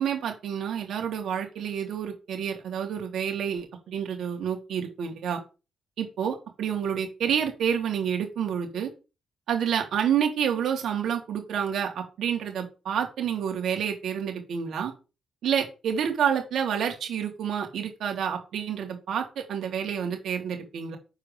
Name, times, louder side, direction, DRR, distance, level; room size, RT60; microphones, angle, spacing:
voice 1, 0.0-5.4 6.0-8.9 9.5-14.9 15.4-21.0, right 8 dB, 75° right, 3 dB, 3.2 m, -29 dB
7.5 x 4.8 x 7.1 m, 0.30 s
cardioid pair, 85°, 0 cm